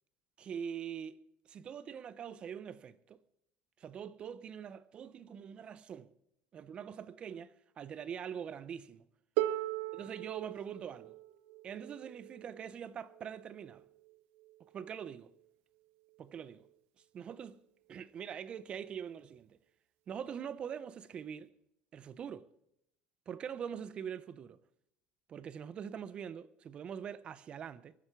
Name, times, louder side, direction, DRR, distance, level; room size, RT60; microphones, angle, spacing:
voice 1, 0.4-1.2 1.5-3.2 3.8-6.1 6.5-9.1 9.9-11.2 11.6-13.8 14.6-15.3 16.2-16.7 17.1-17.6 17.9-19.6 20.1-21.5 21.9-22.5 23.3-24.6 25.3-27.9, right 8 dB, 35° right, 0.6 m, -43 dB
Harp, 9.4-15.2 16.2-16.3, right 15 dB, 80° right, 0.7 m, -40 dB
23.0 x 8.0 x 5.9 m
cardioid pair, 145°, 3 cm